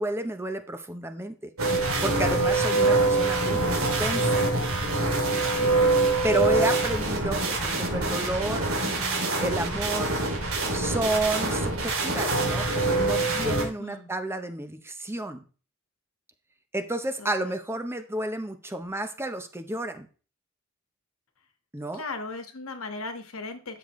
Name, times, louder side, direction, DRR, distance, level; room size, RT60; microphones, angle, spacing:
voice 1, 0.0-1.5 2.0-4.3 6.2-10.1 10.7-15.4 16.7-20.1 21.7-22.0, right 1 dB, 10° right, 8 dB, 0.8 m, -31 dB
sound 1, 1.6-13.6, right 2 dB, 80° right, 2.7 m, -25 dB
voice 2, 5.5-5.9 13.8-14.1 17.2-17.6 21.9-23.8, left 3 dB, 80° left, 7 dB, 1.5 m, -38 dB
12.0 x 6.8 x 3.2 m, 0.37 s
head